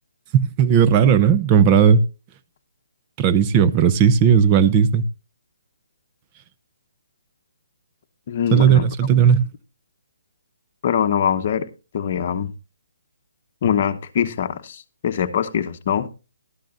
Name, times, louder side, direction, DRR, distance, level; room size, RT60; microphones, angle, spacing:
voice 1, 0.3-2.0 3.2-5.1 8.5-9.5, right 7 dB, 25° right, 0.6 m, -15 dB
voice 2, 8.3-8.9 10.8-11.7 11.9-12.5 13.6-16.1, left 8 dB, 45° left, 1.0 m, -23 dB
13.0 x 12.0 x 2.5 m
hypercardioid pair, 160°, 0 cm